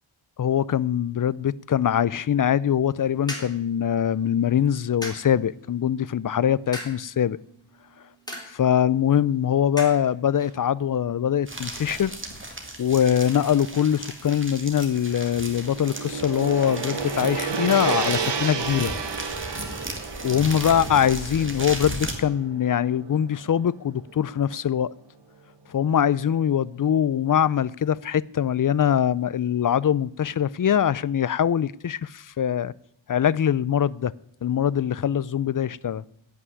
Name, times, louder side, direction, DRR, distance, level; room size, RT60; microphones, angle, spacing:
voice 1, 0.4-7.4 8.5-12.2 12.8-18.9 20.2-24.9 25.7-32.7 33.1-34.1 34.4-36.0, left 9 dB, 45° left, 0.4 m, -23 dB
sound 1, 2.7-12.2, equal, 10° left, 3.5 m, -43 dB
sound 2, 11.5-22.2, right 1 dB, 25° right, 2.3 m, -36 dB
Gong, 15.3-23.7, right 5 dB, 60° right, 1.3 m, -31 dB
16.0 x 6.0 x 9.7 m
wide cardioid pair, 140°, 47 cm